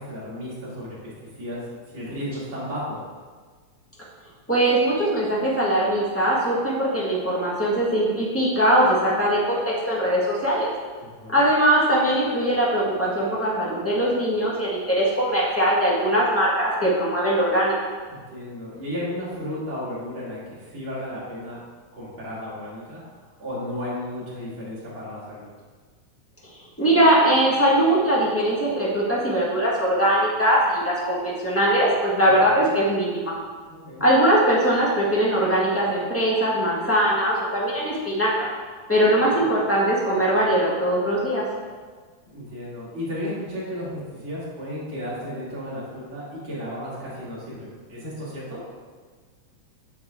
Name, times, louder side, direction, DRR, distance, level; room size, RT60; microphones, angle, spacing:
voice 1, 0.0-3.0 11.0-11.4 18.1-21.6 21.9-25.5 32.4-32.7 33.7-34.0 39.2-39.5 42.2-48.6, left 1 dB, 40° right, -9 dB, 3.5 m, -34 dB
voice 2, 4.5-10.7 11.3-17.7 26.8-33.3 34.0-38.5 38.9-41.4, right 1 dB, 10° left, -6 dB, 0.7 m, -21 dB
9.1 x 7.1 x 3.7 m, 1.5 s
omnidirectional pair, 3.5 m